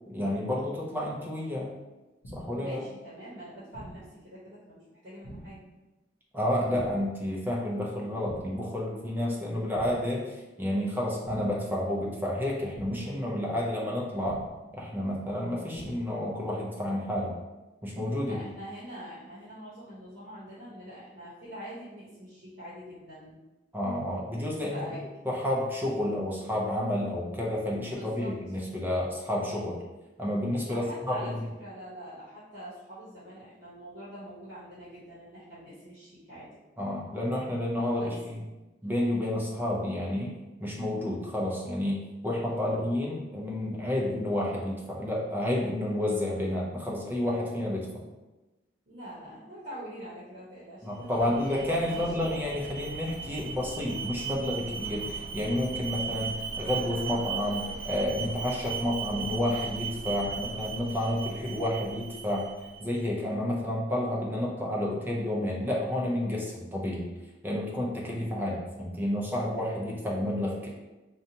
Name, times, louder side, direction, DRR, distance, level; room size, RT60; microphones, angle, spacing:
voice 1, 0.1-1.7 2.3-2.8 6.3-14.4 14.7-17.4 17.8-18.4 23.7-24.9 25.2-29.8 30.2-31.4 36.8-38.4 38.8-40.3 40.6-48.0 50.8-62.5 62.8-67.1 67.4-70.7, left 1 dB, 10° right, -3 dB, 0.5 m, -30 dB
sound 1, 2.2-2.7 3.7-4.2 5.2-5.7 6.7-7.2 8.2-8.7 9.7-10.2 11.2-11.7 12.7-13.2 14.2-14.7 15.7-16.2, right 1 dB, 85° left, 0.7 m, -46 dB
voice 2, 2.5-5.6 18.3-23.4 24.7-25.0 27.9-28.3 30.6-36.5 37.9-38.1 48.9-52.0, equal, 50° right, -10 dB, 0.9 m, -44 dB
Alarm, 50.9-63.0, right 6 dB, 85° right, 0.4 m, -37 dB
2.7 x 2.2 x 2.7 m, 1.1 s
head